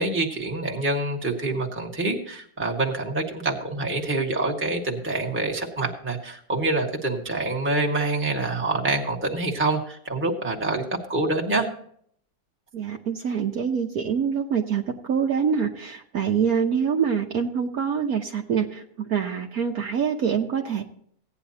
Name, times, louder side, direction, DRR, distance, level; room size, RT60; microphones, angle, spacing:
voice 1, 0.0-10.8 11.1-11.7, right 2 dB, 5° right, 0 dB, 1.5 m, -26 dB
voice 2, 12.7-20.8, right 7 dB, 60° right, 2 dB, 1.3 m, -25 dB
17.0 x 9.7 x 2.8 m, 0.64 s
omnidirectional pair, 1.9 m